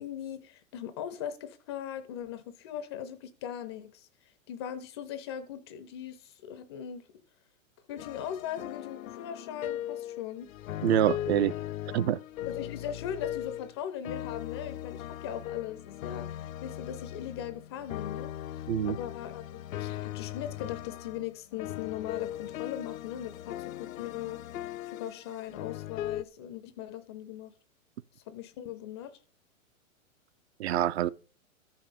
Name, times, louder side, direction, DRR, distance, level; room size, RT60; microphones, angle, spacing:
voice 1, 0.0-4.1 4.5-7.1 7.9-10.5 12.4-24.4 24.9-27.5 28.3-29.2, left 10 dB, 20° left, 0.4 m, -39 dB
sound 1, 8.0-13.8 14.0-26.2, left 12 dB, 75° left, 0.6 m, -39 dB
voice 2, 10.8-11.5 11.9-12.2 18.7-19.0 30.6-31.1, right 11 dB, 50° right, 0.5 m, -26 dB
13.5 x 5.5 x 5.3 m
hypercardioid pair, 135°, 41 cm